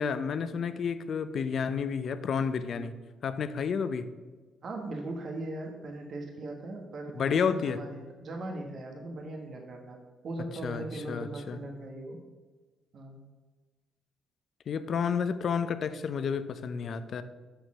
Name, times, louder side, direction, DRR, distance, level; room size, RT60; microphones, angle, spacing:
voice 1, 0.0-2.9 3.2-4.0 7.2-7.8 10.6-11.6 14.7-17.2, left 6 dB, 55° left, 12 dB, 0.6 m, -30 dB
voice 2, 4.6-10.0 10.2-12.2 12.9-13.2, right 2 dB, 55° right, 1 dB, 1.3 m, -39 dB
6.5 x 6.4 x 6.2 m, 1.3 s
cardioid pair, 95°, 0 cm